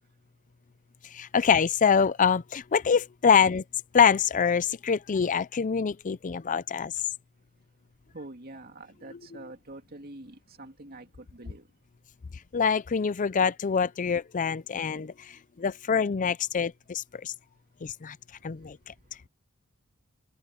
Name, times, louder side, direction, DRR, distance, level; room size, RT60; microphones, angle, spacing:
voice 1, 1.1-3.6 3.9-6.9 12.5-17.3 17.8-18.2 18.4-18.9, left 6 dB, 35° left, 0.4 m, -25 dB
voice 2, 8.1-11.7, right 2 dB, 45° right, 2.5 m, -45 dB
open air
head